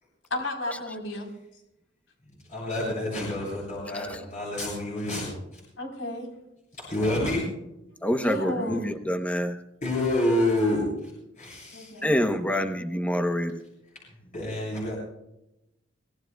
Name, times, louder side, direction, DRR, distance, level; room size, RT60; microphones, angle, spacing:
voice 1, 0.3-1.3 3.9-4.2 5.8-6.3 7.0-7.1 8.2-8.8 11.7-12.5, left 1 dB, 85° left, 2 dB, 4.0 m, -34 dB
voice 2, 2.2-5.6 6.8-7.5 9.8-11.1 11.4-12.0 13.9-15.0, left 1 dB, 40° left, -5 dB, 7.3 m, -28 dB
voice 3, 8.0-9.6 12.0-13.6, equal, 5° left, 7 dB, 0.8 m, -26 dB
25.0 x 18.5 x 2.3 m, 0.87 s
head